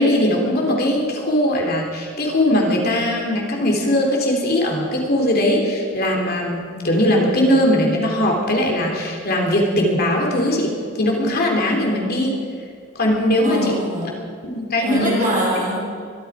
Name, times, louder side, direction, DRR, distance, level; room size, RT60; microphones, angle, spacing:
voice 1, 0.0-12.3 12.9-13.7 14.4-15.1, left 1 dB, 50° left, 0 dB, 3.0 m, -20 dB
voice 2, 11.5-12.3 13.4-14.2 14.8-15.9, right 1 dB, 45° right, -2 dB, 4.9 m, -24 dB
23.0 x 13.0 x 4.9 m, 2.2 s
head